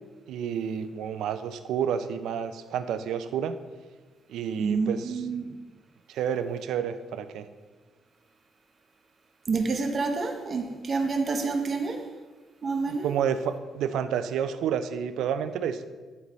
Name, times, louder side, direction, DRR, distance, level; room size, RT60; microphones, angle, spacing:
voice 1, 0.3-3.6 4.3-5.1 6.1-7.4 12.9-15.8, right 8 dB, 80° right, 11 dB, 0.4 m, -30 dB
voice 2, 4.6-5.6 9.5-12.1 12.6-13.1, right 4 dB, 45° right, 5 dB, 0.8 m, -28 dB
9.7 x 4.0 x 3.1 m, 1.3 s
cardioid pair, 90°, 0 cm